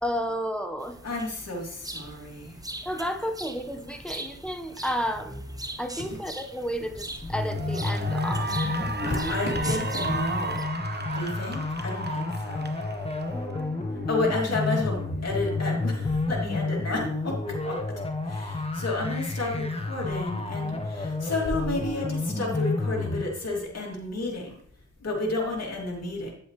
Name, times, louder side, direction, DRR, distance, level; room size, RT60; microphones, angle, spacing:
voice 1, 0.0-0.9 2.8-5.5 5.8-8.5 13.3-14.1, equal, 5° left, 5 dB, 1.2 m, -32 dB
sound 1, 0.8-10.6, right 1 dB, 10° right, 1.0 m, -41 dB
voice 2, 1.0-2.6 6.1-6.2 9.0-10.6 11.1-12.7 14.1-17.8 18.2-24.6 25.0-26.3, left 2 dB, 60° left, -2 dB, 2.8 m, -31 dB
Cheering / Applause, 6.7-7.0 7.4-13.9, right 3 dB, 35° right, 1.2 m, -35 dB
sound 2, 7.2-23.2, left 2 dB, 20° left, 1.5 m, -30 dB
8.8 x 7.9 x 3.2 m, 0.62 s
cardioid pair, 50°, 29 cm